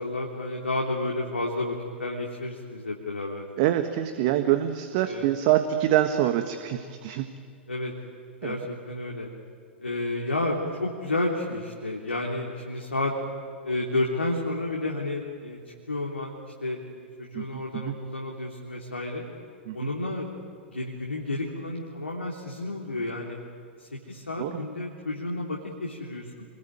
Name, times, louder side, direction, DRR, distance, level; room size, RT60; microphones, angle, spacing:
voice 1, 0.0-3.5 5.0-5.3 7.7-7.9 8.4-9.3 9.8-13.1 13.6-15.6 15.9-19.3 19.7-20.3 20.7-23.4 23.8-26.5, left 2 dB, 80° left, -1 dB, 3.3 m, -31 dB
voice 2, 3.6-7.2 8.4-8.6 17.3-17.9 19.7-19.9 24.4-24.5, right 12 dB, 45° right, 8 dB, 1.5 m, -25 dB
28.0 x 22.5 x 9.3 m, 2.2 s
figure-of-eight pair, 100°, 6 cm